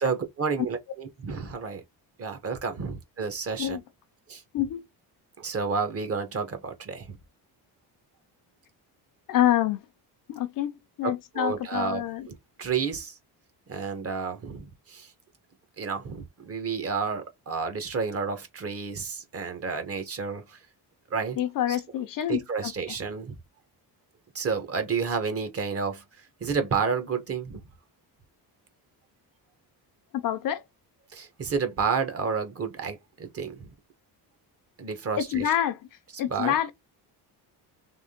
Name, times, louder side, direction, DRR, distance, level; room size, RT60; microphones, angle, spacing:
voice 1, 0.0-1.8 2.2-3.8 4.3-4.4 5.4-7.2 11.0-13.1 13.7-15.1 15.8-20.6 21.1-21.4 21.7-21.8 22.3-23.4 24.3-26.0 26.4-27.6 31.1-33.7 34.8-35.5 36.3-36.5, right 5 dB, 35° right, 1.2 m, -30 dB
voice 2, 9.3-9.8 10.3-12.3 21.4-22.7 30.1-30.6 35.2-35.8 36.2-36.7, left 11 dB, 55° left, 0.7 m, -27 dB
3.6 x 3.3 x 3.6 m
cardioid pair, 165°, 40 cm